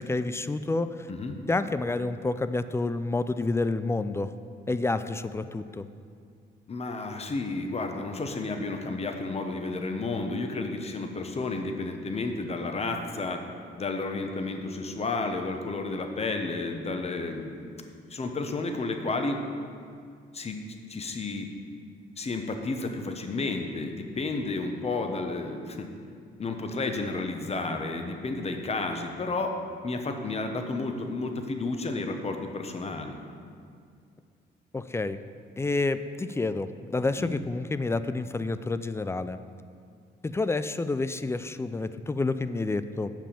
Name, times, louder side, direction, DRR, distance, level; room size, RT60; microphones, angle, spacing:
voice 1, 0.0-1.1 1.5-4.3 4.7-5.9 34.7-35.2 35.6-39.4 40.2-43.1, left 3 dB, 15° left, 12 dB, 0.3 m, -29 dB
voice 2, 6.7-13.4 13.8-17.7 18.1-19.4 20.3-20.6 20.9-21.5 22.2-25.9 26.4-29.5 29.8-33.1 37.2-37.4, left 3 dB, 30° left, 5 dB, 1.0 m, -31 dB
7.4 x 5.7 x 6.8 m, 2.2 s
cardioid pair, 90°, 20 cm